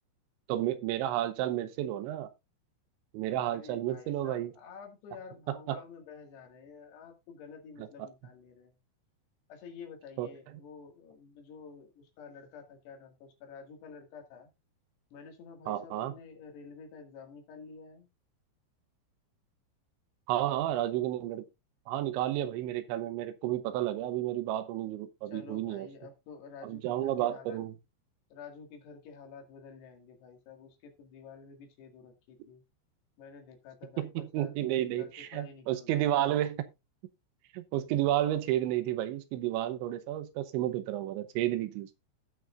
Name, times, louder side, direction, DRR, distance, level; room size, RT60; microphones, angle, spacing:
voice 1, 0.5-2.3 3.1-4.5 5.5-5.8 7.8-7.9 10.2-10.3 15.7-16.1 20.3-21.4 21.9-25.9 26.6-27.7 34.0-36.6 37.5-41.9, right 13 dB, 85° right, 3.2 m, -31 dB
voice 2, 3.5-8.8 9.5-14.5 15.1-18.1 25.3-27.6 28.3-32.6 33.2-36.3, left 5 dB, 65° left, 3.9 m, -50 dB
17.5 x 6.2 x 2.5 m
omnidirectional pair, 5.3 m